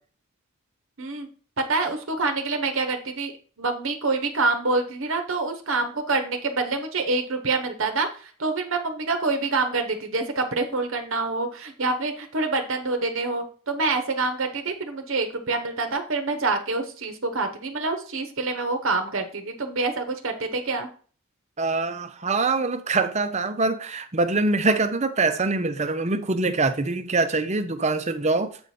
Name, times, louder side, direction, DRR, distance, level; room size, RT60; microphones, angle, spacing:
voice 1, 1.6-3.3 3.6-20.9, right 3 dB, 60° right, 1.0 m, -26 dB
voice 2, 21.6-28.6, right 3 dB, 30° right, 0.7 m, -24 dB
7.9 x 4.9 x 4.3 m
head